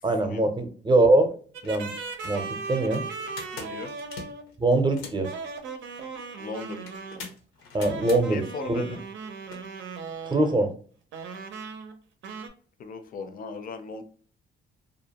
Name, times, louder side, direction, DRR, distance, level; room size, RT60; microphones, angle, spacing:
voice 1, 0.0-1.3 1.6-1.9 2.2-3.0 4.6-5.3 7.7-8.4 8.7-8.8 10.2-10.7, right 2 dB, 25° right, 6 dB, 0.6 m, -22 dB
sound 1, 1.1-1.2 1.5-1.7 2.1-5.3 6.9-8.2 9.5-9.6, left 4 dB, 85° left, 0.7 m, -43 dB
sound 2, 1.5-4.5 5.2-7.3 7.8-10.6 11.1-12.0 12.2-12.5, right 4 dB, 75° right, 0.5 m, -38 dB
voice 2, 3.5-3.9 6.4-6.9 8.0-9.1 12.8-14.0, left 4 dB, 45° left, 8 dB, 0.5 m, -37 dB
2.5 x 2.1 x 2.8 m, 0.43 s
cardioid pair, 90°, 20 cm